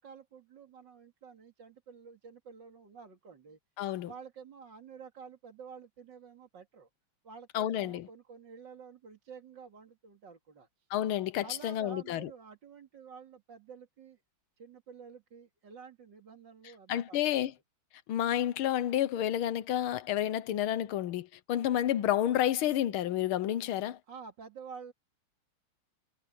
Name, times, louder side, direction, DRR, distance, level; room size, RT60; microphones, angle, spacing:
voice 1, 0.0-3.6 4.0-6.9 7.2-10.9 11.4-14.2 14.6-17.2 24.1-24.9, right 6 dB, 55° right, 3.0 m, -50 dB
voice 2, 3.8-4.1 7.5-8.1 10.9-12.3 16.9-17.5 18.1-24.0, left 12 dB, 80° left, 1.6 m, -30 dB
omnidirectional pair, 2.3 m